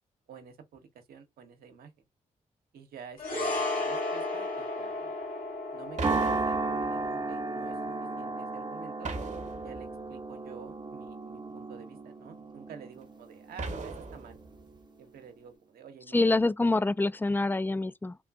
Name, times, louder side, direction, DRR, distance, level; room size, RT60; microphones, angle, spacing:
voice 1, 0.3-1.9 2.7-5.2 5.7-9.1 9.6-14.4 15.0-16.2, right 7 dB, 80° right, 0.9 m, -50 dB
sound 1, 3.2-11.7 11.9-12.1, left 2 dB, 65° left, 2.0 m, -36 dB
sound 2, 6.0-14.5, right 3 dB, 30° right, 0.6 m, -35 dB
sound 3, 6.0-7.2 9.0-10.1 13.6-14.6, right 3 dB, 50° right, 0.9 m, -38 dB
voice 2, 16.1-18.1, left 2 dB, 15° left, 0.3 m, -26 dB
3.7 x 2.5 x 2.3 m
supercardioid pair, 45°, 15 cm